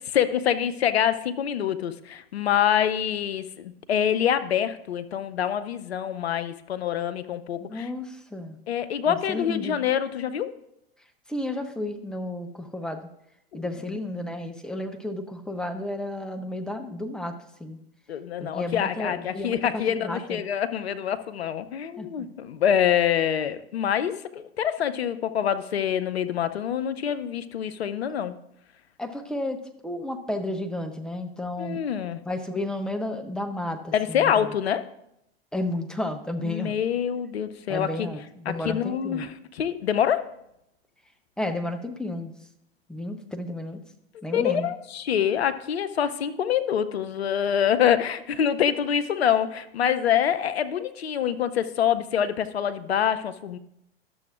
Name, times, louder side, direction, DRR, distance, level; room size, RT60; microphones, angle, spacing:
voice 1, 0.0-7.9 8.7-10.5 13.5-13.6 18.1-28.3 31.6-32.2 33.9-34.8 36.4-38.1 38.5-40.3 44.3-53.6, left 9 dB, 80° left, 12 dB, 0.6 m, -26 dB
voice 2, 7.6-8.6 9.1-9.8 11.3-13.1 13.5-17.8 18.4-20.4 22.0-22.3 29.0-31.8 32.3-34.5 35.5-36.8 37.7-39.3 41.4-42.3 42.9-43.8 44.2-44.7, left 1 dB, ahead, 5 dB, 0.6 m, -32 dB
12.0 x 6.9 x 2.4 m, 0.80 s
figure-of-eight pair, 90°, 31 cm